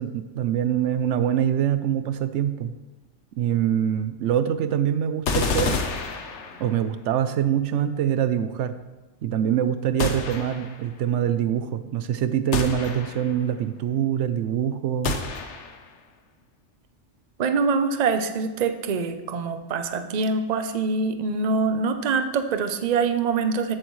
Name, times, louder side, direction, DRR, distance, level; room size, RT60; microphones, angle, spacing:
voice 1, 0.0-2.7 3.4-5.8 6.6-8.7 9.2-15.1, right 9 dB, 75° right, 11 dB, 0.9 m, -24 dB
sound 1, 5.3-6.9 10.0-10.9 12.5-13.4 15.0-15.9, left 4 dB, 70° left, 1.2 m, -29 dB
voice 2, 17.4-23.8, right 4 dB, 45° right, 8 dB, 0.7 m, -24 dB
14.0 x 7.9 x 3.1 m, 1.2 s
omnidirectional pair, 1.3 m